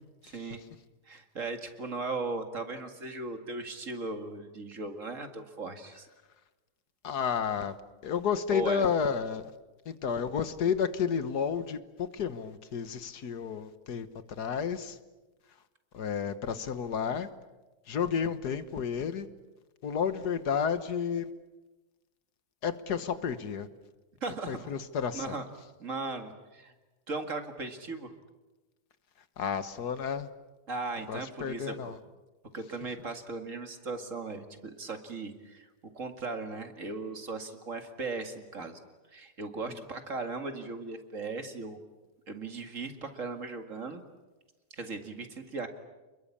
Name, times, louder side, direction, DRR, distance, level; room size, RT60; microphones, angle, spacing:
voice 1, 0.2-0.6 1.1-6.1 8.5-8.9 24.2-24.7 25.1-25.5 25.8-26.7 27.1-28.1 30.7-32.0 32.5-35.7 35.9-38.8 39.1-41.8 42.3-44.0 44.8-45.7, right 3 dB, 50° right, 6 dB, 2.5 m, -37 dB
voice 2, 7.0-7.7 8.0-9.5 9.9-14.1 14.4-15.0 15.9-17.3 17.9-19.3 19.8-21.3 22.6-23.7 24.5-25.4 29.4-30.3 31.1-32.0 39.7-39.8, left 7 dB, 75° left, 12 dB, 1.8 m, -31 dB
29.0 x 22.0 x 8.6 m, 1.1 s
omnidirectional pair, 1.7 m